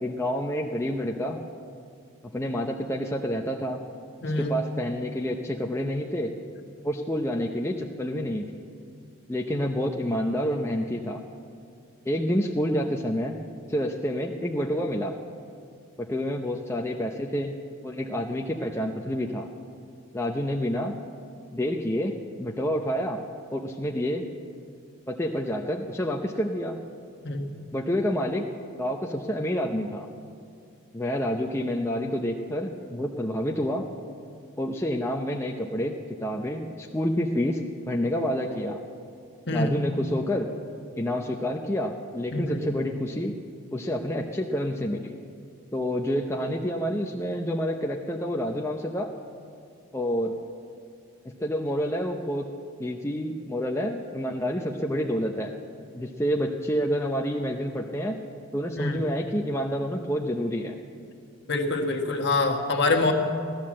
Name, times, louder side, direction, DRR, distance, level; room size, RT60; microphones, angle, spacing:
voice 1, 0.0-1.4 2.3-3.8 4.2-6.3 6.8-8.6 9.3-11.2 12.1-13.4 13.7-15.1 16.0-17.5 17.8-19.5 20.1-20.9 21.5-23.2 23.5-24.3 25.1-26.8 27.7-28.5 28.8-30.1 30.9-33.9 34.6-38.8 39.5-40.5 41.0-43.3 43.7-45.1 45.7-49.1 49.9-50.3 51.4-52.5 52.8-55.5 55.9-58.2 58.5-60.7, equal, 10° left, 0 dB, 0.6 m, -28 dB
voice 2, 4.2-4.5 27.2-27.5 39.5-39.7 42.3-42.6 58.8-59.0 61.5-63.1, left 2 dB, 55° left, 3 dB, 1.5 m, -25 dB
16.0 x 12.0 x 7.5 m, 2.3 s
head